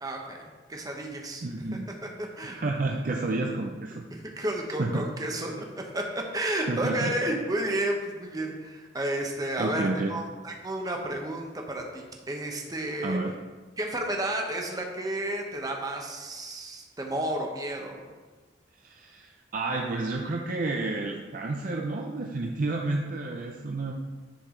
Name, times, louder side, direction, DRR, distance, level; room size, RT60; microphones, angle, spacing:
voice 1, 0.0-1.4 2.2-2.6 4.1-13.2 13.8-18.1, right 1 dB, 20° right, 1 dB, 1.0 m, -32 dB
voice 2, 1.4-1.9 2.6-4.1 4.8-5.0 6.7-7.2 9.6-10.2 13.0-13.4 18.8-23.9, right 2 dB, 50° right, 1 dB, 0.5 m, -30 dB
10.0 x 4.7 x 3.8 m, 1.3 s
head